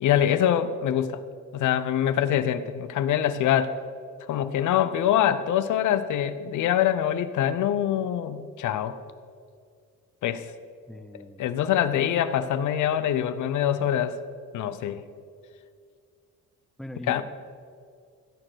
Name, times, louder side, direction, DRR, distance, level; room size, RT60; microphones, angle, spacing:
voice 1, 0.0-1.2 1.5-3.7 4.3-9.0 10.2-10.4 11.4-14.2 14.5-15.0 17.1-17.2, left 10 dB, 75° left, 12 dB, 0.7 m, -24 dB
voice 2, 10.9-11.4 16.8-17.2, left 1 dB, ahead, 9 dB, 0.7 m, -40 dB
16.0 x 6.7 x 6.2 m, 2.2 s
cardioid pair, 90°, 30 cm